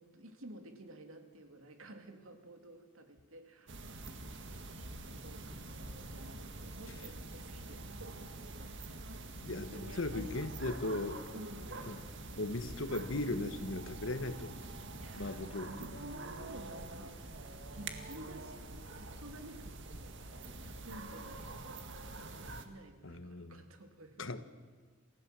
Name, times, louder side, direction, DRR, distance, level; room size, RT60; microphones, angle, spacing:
voice 1, 0.0-8.3 8.6-9.0 9.7-10.8 11.3-11.8 14.9-21.9 22.1-24.4, right 1 dB, 70° right, 6 dB, 2.6 m, -53 dB
sound 1, 3.7-22.6, right 2 dB, 55° right, 1.8 m, -46 dB
voice 2, 9.4-11.2 11.9-12.0 12.4-14.6 15.1-16.0 23.0-23.6 24.2-24.4, left 2 dB, 60° left, 11 dB, 1.3 m, -38 dB
28.5 x 16.0 x 7.6 m, 1.6 s
head